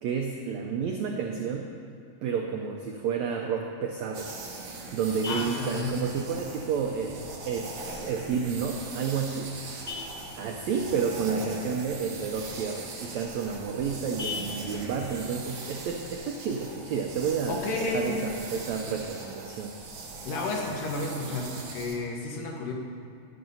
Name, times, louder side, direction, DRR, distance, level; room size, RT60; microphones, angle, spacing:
voice 1, 0.0-1.7 2.2-4.3 4.9-9.5 10.3-19.7, right 6 dB, 85° right, 2 dB, 1.6 m, -30 dB
Vehicle horn car horn honking, 4.0-17.0, left 4 dB, 30° left, 1.4 m, -45 dB
sound 1, 4.1-22.0, right 3 dB, 65° right, 1.2 m, -41 dB
voice 2, 5.3-5.9 17.5-18.3 20.2-22.7, left 3 dB, 75° left, 1 dB, 2.8 m, -32 dB
11.0 x 9.0 x 5.5 m, 2.5 s
omnidirectional pair, 4.0 m